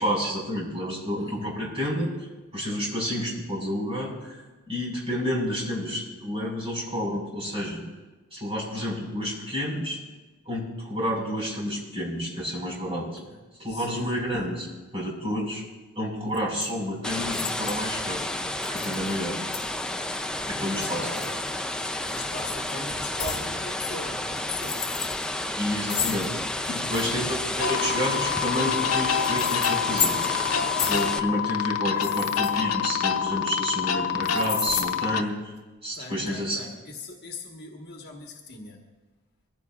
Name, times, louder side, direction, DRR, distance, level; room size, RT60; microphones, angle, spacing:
voice 1, 0.0-2.1 2.5-7.8 8.3-10.0 10.5-13.1 13.6-14.7 14.9-15.6 16.0-18.2 18.7-19.4 20.5-21.1 25.6-30.5 30.8-35.3 35.8-36.6, equal, 30° right, -3 dB, 5.3 m, -30 dB
voice 2, 1.1-1.8 4.2-4.3 13.2-13.4 13.7-14.1 20.6-21.5 22.1-24.9 26.8-27.6 35.9-38.9, left 2 dB, 50° left, 1 dB, 1.4 m, -40 dB
sound 1, 16.3-16.7 17.3-17.9 18.6-19.2 19.5-19.6 20.6-21.7 22.1-22.3 23.2-23.5 24.4-25.3 25.9-27.2 28.2-30.5 30.8-31.1 31.9-33.2 34.2-34.9, left 6 dB, 30° left, 2.1 m, -32 dB
sound 2, 17.0-31.2, left 1 dB, 5° left, 0.5 m, -31 dB
sound 3, 27.6-35.2, left 8 dB, 80° left, 0.8 m, -27 dB
23.0 x 15.5 x 2.5 m, 1.2 s
head